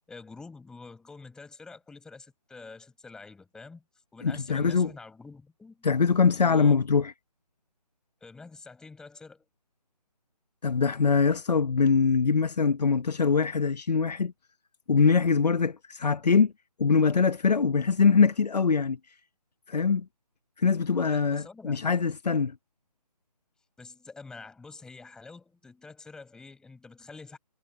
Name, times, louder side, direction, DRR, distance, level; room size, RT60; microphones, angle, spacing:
voice 1, 0.1-3.8 4.1-5.9 6.3-6.8 8.2-9.4 21.1-21.9 23.8-27.4, left 4 dB, 5° left, 7.7 m, -47 dB
voice 2, 4.2-4.9 5.8-7.1 10.6-14.3 14.9-16.5 16.8-19.0 19.7-20.1 20.6-22.5, left 5 dB, 75° left, 1.0 m, -23 dB
figure-of-eight pair, 165°, 21 cm